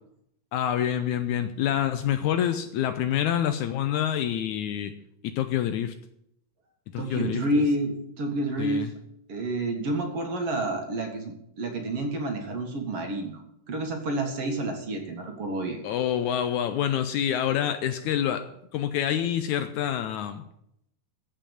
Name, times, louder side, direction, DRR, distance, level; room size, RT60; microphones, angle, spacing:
voice 1, 0.5-4.9 5.2-6.0 6.9-7.4 8.6-8.9 15.8-18.5 18.7-20.5, left 10 dB, 80° left, 9 dB, 1.9 m, -27 dB
voice 2, 7.0-9.0 9.3-13.4 13.7-15.8, right 1 dB, 50° right, 3 dB, 2.4 m, -29 dB
14.5 x 5.6 x 8.8 m, 0.77 s
omnidirectional pair, 3.9 m